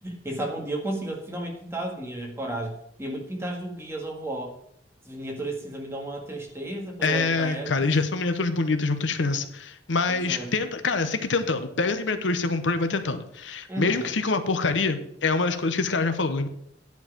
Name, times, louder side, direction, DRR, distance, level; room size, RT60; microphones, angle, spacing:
voice 1, 0.0-4.5 5.0-7.8 10.1-10.5 13.7-14.1, right 1 dB, 15° right, 0 dB, 1.8 m, -33 dB
voice 2, 7.0-16.5, left 3 dB, 80° left, 9 dB, 0.8 m, -25 dB
10.5 x 4.7 x 7.1 m, 0.74 s
head